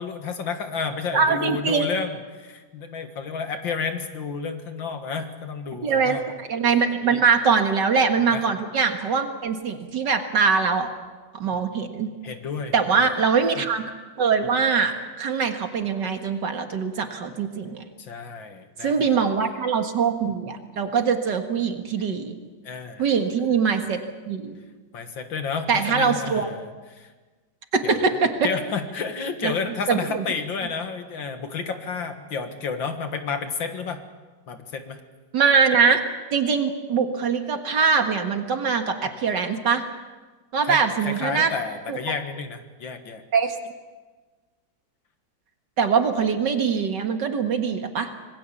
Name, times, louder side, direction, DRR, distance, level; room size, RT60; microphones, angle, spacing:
voice 1, 0.0-6.3 8.3-8.4 12.2-13.1 18.0-19.2 19.4-19.5 22.6-23.1 24.9-27.1 27.8-28.1 28.4-34.0 34.5-35.0 40.6-43.2, left 5 dB, 70° left, 7 dB, 2.4 m, -31 dB
voice 2, 1.1-1.9 5.8-10.9 11.3-12.1 12.7-13.8 14.2-17.8 18.8-22.4 23.0-24.0 24.3-24.6 25.7-26.5 27.7-28.5 29.4-29.5 29.9-30.2 35.3-36.0 36.3-39.8 40.5-41.5 41.9-42.0 43.3-43.6 45.8-48.1, right 5 dB, 60° right, 6 dB, 2.3 m, -22 dB
26.5 x 20.0 x 7.2 m, 1.3 s
omnidirectional pair, 2.1 m